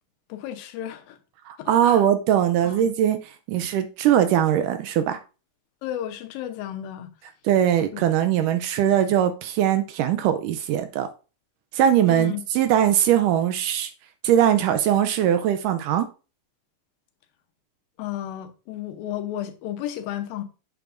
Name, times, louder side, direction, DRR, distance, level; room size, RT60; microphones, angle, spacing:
voice 1, 0.3-1.2 1.6-2.1 2.6-2.9 5.8-7.1 7.9-8.1 12.1-12.4 18.0-20.4, left 12 dB, 85° left, 2.6 m, -33 dB
voice 2, 1.5-3.2 3.5-5.2 7.5-11.1 11.7-13.9 14.2-16.1, right 10 dB, 80° right, 2.0 m, -21 dB
8.2 x 6.9 x 2.5 m
omnidirectional pair, 4.0 m